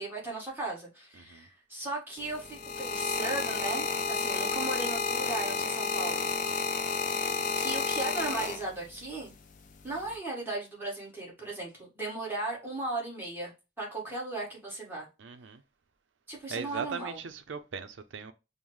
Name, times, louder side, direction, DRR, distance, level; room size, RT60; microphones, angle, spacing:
voice 1, 0.0-6.3 7.2-9.4 9.8-13.5 13.8-15.1 16.3-17.2, right 2 dB, 10° right, 1.5 m, -36 dB
voice 2, 1.2-1.5 15.2-15.6 16.5-18.3, right 5 dB, 90° right, 0.5 m, -39 dB
sound 1, 2.2-9.0 9.8-10.2, left 5 dB, 45° left, 0.5 m, -31 dB
5.4 x 2.1 x 3.1 m
head